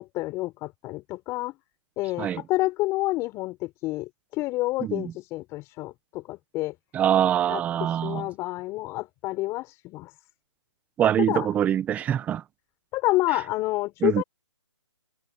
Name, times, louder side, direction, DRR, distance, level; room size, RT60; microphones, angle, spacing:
voice 1, 0.0-1.6 2.0-6.8 7.5-7.6 7.9-10.1 11.3-11.5 12.9-14.2, left 19 dB, 20° left, 5.3 m, -29 dB
voice 2, 4.8-5.1 6.9-8.3 11.0-12.4 14.0-14.2, right 10 dB, 10° right, 1.0 m, -24 dB
hypercardioid pair, 155°, 16 cm